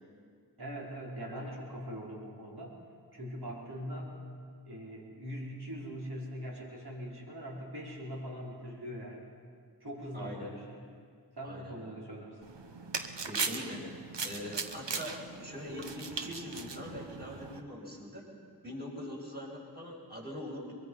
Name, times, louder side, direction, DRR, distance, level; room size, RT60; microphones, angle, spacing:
voice 1, 0.6-2.8 3.1-4.1 4.7-9.3 9.8-10.8 11.3-12.4, equal, 65° right, -4 dB, 5.3 m, -42 dB
voice 2, 10.1-10.5 11.4-11.7 13.3-13.9 14.2-18.3 18.6-20.7, left 1 dB, 25° right, -3 dB, 6.8 m, -42 dB
sound 1, 12.4-17.6, right 4 dB, 90° right, 1.2 m, -39 dB
23.5 x 22.5 x 5.7 m, 2.1 s
wide cardioid pair, 50°, 42 cm